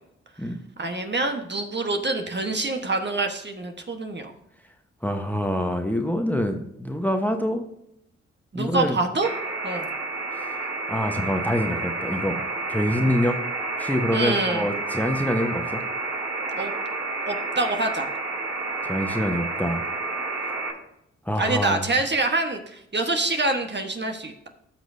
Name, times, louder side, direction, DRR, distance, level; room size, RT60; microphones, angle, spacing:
voice 1, 0.8-4.3 8.5-9.3 9.6-9.9 14.1-14.7 16.5-16.7 17.3-18.1 21.4-24.5, right 2 dB, 35° right, 5 dB, 1.4 m, -26 dB
voice 2, 5.0-7.6 8.5-9.0 10.3-10.5 10.9-12.4 12.7-13.4 13.8-15.8 18.8-19.8 21.2-21.9, equal, 5° left, 4 dB, 1.1 m, -25 dB
sound 1, 9.2-20.7, right 3 dB, 60° right, 3.9 m, -30 dB
15.0 x 5.9 x 2.7 m, 0.79 s
supercardioid pair, 45°, 30 cm